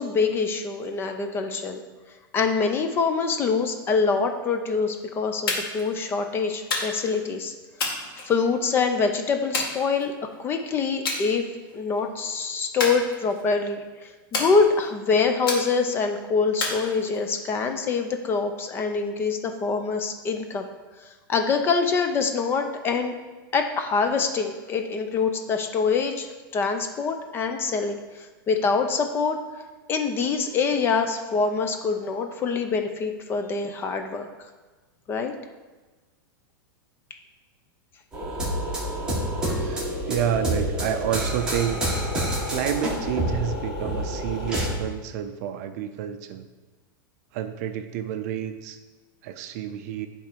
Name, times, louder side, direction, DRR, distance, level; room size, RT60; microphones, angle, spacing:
voice 1, 0.0-1.8 2.3-7.5 8.2-10.1 10.4-11.4 11.7-20.6 21.3-23.2 23.5-29.4 29.9-34.3 35.1-35.3, left 5 dB, 20° left, 6 dB, 0.6 m, -25 dB
sound 1, 5.5-5.9 6.7-7.2 7.8-8.7 9.5-10.4 11.1-11.3 11.7-12.0 12.8-13.6 14.3-15.0 15.5-16.0 16.6-17.4, left 3 dB, 80° left, 2.1 m, -30 dB
sound 2, 38.1-44.8, equal, 5° right, 1.7 m, -28 dB
voice 2, 39.4-41.8 42.5-46.5 47.3-48.8 49.2-50.1, right 9 dB, 45° right, 9 dB, 0.5 m, -29 dB
10.0 x 3.8 x 4.6 m, 1.3 s
supercardioid pair, 160°, 12 cm